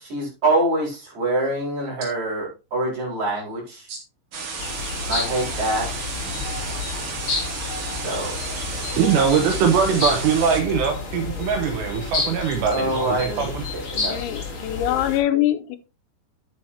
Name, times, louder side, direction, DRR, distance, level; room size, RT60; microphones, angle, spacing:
voice 1, 0.0-3.9 5.1-5.9 8.0-8.3 12.7-14.2, right 2 dB, 40° right, 6.1 m, -25 dB
sound 1, 4.3-10.6, right 4 dB, 55° right, 1.5 m, -32 dB
sound 2, 4.6-15.2, left 4 dB, 30° left, 3.1 m, -30 dB
voice 2, 9.0-13.6, right 7 dB, 75° right, 3.0 m, -22 dB
voice 3, 14.1-15.8, left 13 dB, 85° left, 3.0 m, -23 dB
10.5 x 9.2 x 2.8 m
omnidirectional pair, 5.4 m